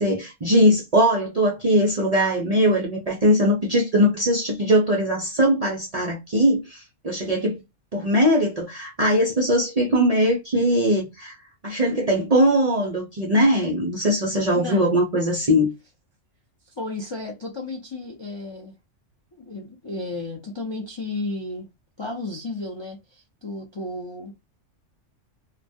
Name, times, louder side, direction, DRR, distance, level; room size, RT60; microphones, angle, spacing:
voice 1, 0.0-7.6 7.9-11.4 11.6-15.7, equal, 50° right, 0.4 m, -20 dB
voice 2, 14.5-14.9 16.8-18.7 19.3-21.7 22.0-24.3, left 2 dB, 40° left, 0.4 m, -33 dB
2.2 x 2.1 x 2.6 m
omnidirectional pair, 1.3 m